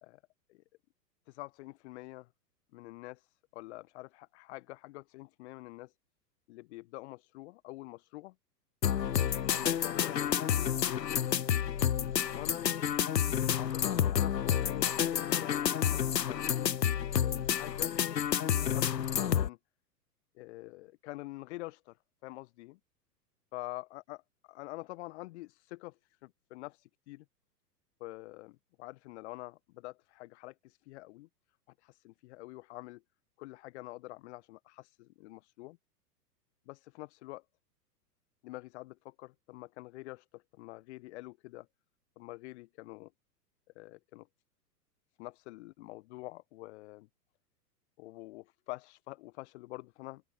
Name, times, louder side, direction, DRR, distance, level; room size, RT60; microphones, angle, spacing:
voice 1, 1.3-2.3 2.7-5.9 6.5-8.3 9.3-11.4 12.3-12.7 13.6-16.9 17.2-17.9 18.6-19.6 20.3-22.0 22.2-22.8 23.5-24.2 24.5-27.2 28.0-31.3 31.8-33.0 33.4-35.8 36.7-37.4 38.4-41.7 42.1-43.1 43.7-44.3 45.2-47.1 48.0-50.2, left 20 dB, 45° left, 1.6 m, -46 dB
sound 1, 8.8-19.5, left 9 dB, 80° left, 0.9 m, -29 dB
open air
figure-of-eight pair, 100°, 49 cm